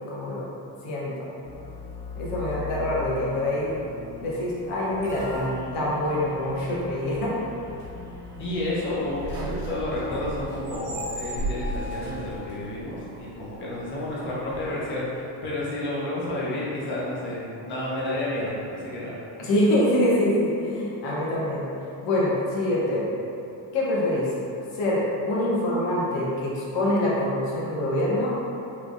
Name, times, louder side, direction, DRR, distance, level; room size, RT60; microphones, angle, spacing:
voice 1, 0.1-0.4 0.8-1.2 2.2-3.8 4.2-7.3 19.4-21.6 22.0-23.0 23.7-24.3 24.8-28.3, left 1 dB, 85° left, -6 dB, 1.0 m, -25 dB
sound 1, 1.4-15.1, left 1 dB, 50° right, 1.0 m, -37 dB
voice 2, 8.4-19.2, left 1 dB, 25° left, -8 dB, 0.6 m, -30 dB
3.3 x 3.1 x 2.5 m, 2.9 s
cardioid pair, 155°, 48 cm